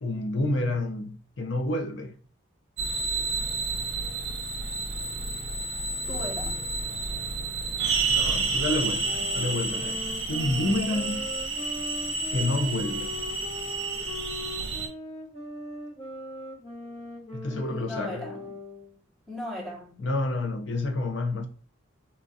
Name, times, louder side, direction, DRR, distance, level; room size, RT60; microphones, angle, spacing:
voice 1, 0.0-2.2 8.1-11.3 12.3-13.1 17.3-18.3 20.0-21.5, left 2 dB, 60° left, 0.5 m, -29 dB
sound 1, 2.8-14.9, right 3 dB, 60° right, 0.7 m, -30 dB
voice 2, 6.1-6.8 17.5-18.5 19.3-20.0, left 1 dB, ahead, 0.8 m, -38 dB
sound 2, 9.0-19.0, left 1 dB, 30° left, 0.9 m, -40 dB
4.2 x 2.3 x 2.6 m
head